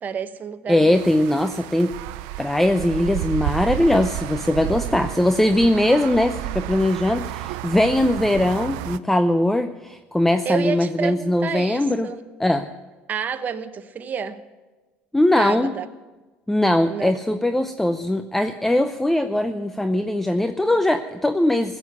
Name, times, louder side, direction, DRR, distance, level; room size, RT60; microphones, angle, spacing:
voice 1, 0.0-1.1 10.4-12.2 13.1-14.4 15.4-15.9 16.9-17.1, right 7 dB, 40° right, 10 dB, 1.0 m, -29 dB
voice 2, 0.7-1.9 2.4-12.1 12.4-12.7 15.1-15.7 16.5-21.8, left 1 dB, 5° left, 9 dB, 0.6 m, -20 dB
sound 1, 0.9-9.0, right 17 dB, 80° right, 0.5 m, -31 dB
15.5 x 7.8 x 9.5 m, 1.2 s
supercardioid pair, 90°, 5 cm